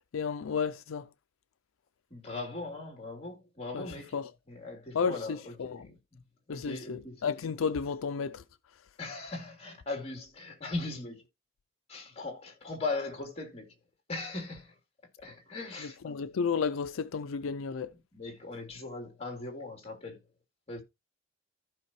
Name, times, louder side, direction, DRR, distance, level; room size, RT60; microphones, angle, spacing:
voice 1, 0.1-1.0 3.7-3.9 4.1-4.3 4.9-5.8 6.5-8.4 16.0-17.9, left 6 dB, 80° left, 0.4 m, -32 dB
voice 2, 2.1-4.2 4.5-6.2 6.5-7.2 9.0-11.2 11.9-13.7 14.1-14.7 15.2-16.1 18.1-20.2 20.7-20.8, left 3 dB, 30° left, 3.1 m, -39 dB
14.5 x 5.3 x 3.1 m
head